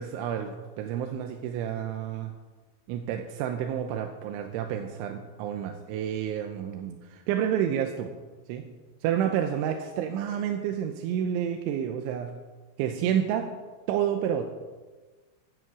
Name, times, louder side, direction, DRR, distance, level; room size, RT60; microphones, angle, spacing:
voice 1, 0.0-2.3 2.9-8.1 8.5-8.6 9.0-12.3 12.8-13.5 13.9-14.5, right 9 dB, 80° right, 5 dB, 3.0 m, -29 dB
15.5 x 10.0 x 6.1 m, 1.3 s
omnidirectional pair, 6.0 m